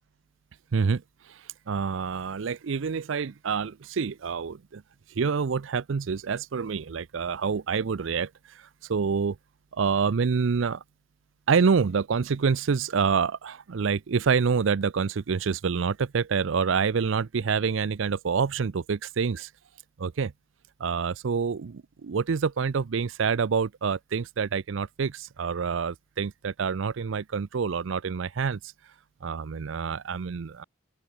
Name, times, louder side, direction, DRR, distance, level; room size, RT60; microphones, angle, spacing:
voice 1, 0.7-4.8 5.2-9.4 9.7-10.8 11.5-19.5 20.0-20.3 20.8-28.7 29.2-30.6, right 5 dB, 75° right, 0.5 m, -27 dB
open air
head